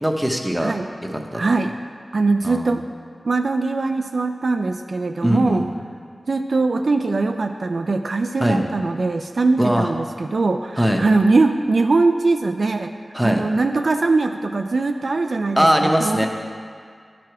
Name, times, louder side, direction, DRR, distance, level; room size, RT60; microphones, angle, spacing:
voice 1, 0.0-0.7 1.0-1.4 2.4-2.8 5.2-5.6 8.4-8.6 9.6-9.9 10.8-11.0 13.1-13.4 15.6-16.3, equal, 5° right, 2 dB, 0.8 m, -20 dB
voice 2, 1.3-1.7 2.1-2.8 3.3-5.6 6.3-12.9 13.2-16.3, right 3 dB, 70° right, 6 dB, 0.3 m, -21 dB
10.0 x 4.8 x 4.6 m, 2.1 s
cardioid pair, 50°, 0 cm